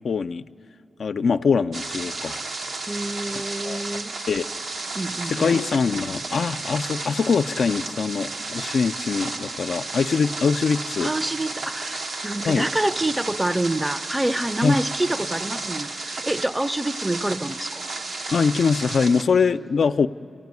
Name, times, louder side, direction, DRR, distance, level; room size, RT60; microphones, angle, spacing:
voice 1, 0.0-0.5 1.0-2.4 3.6-3.8 4.3-4.4 5.2-11.1 12.5-12.7 14.6-14.8 18.3-20.1, left 5 dB, 70° left, 9 dB, 0.4 m, -23 dB
sound 1, 1.7-19.2, right 3 dB, 80° right, 1.0 m, -32 dB
voice 2, 2.9-4.2 4.9-5.6 11.0-17.8, right 1 dB, 15° right, 13 dB, 0.5 m, -27 dB
29.0 x 16.0 x 9.5 m, 2.8 s
cardioid pair, 75°, 0 cm